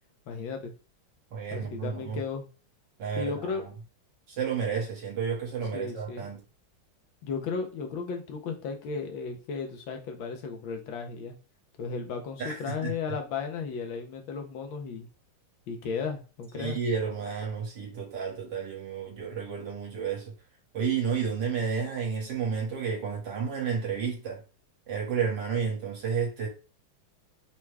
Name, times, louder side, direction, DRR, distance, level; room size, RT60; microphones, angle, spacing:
voice 1, 0.3-0.7 1.5-2.5 3.1-3.6 5.7-6.3 7.2-11.3 11.8-15.1 15.7-16.8, left 5 dB, 75° left, 1.5 m, -35 dB
voice 2, 1.3-2.2 3.0-3.7 4.3-6.4 12.4-12.9 16.5-20.3 20.7-24.4 24.9-26.5, right 6 dB, 60° right, 1.9 m, -31 dB
5.8 x 2.3 x 3.3 m
omnidirectional pair, 2.3 m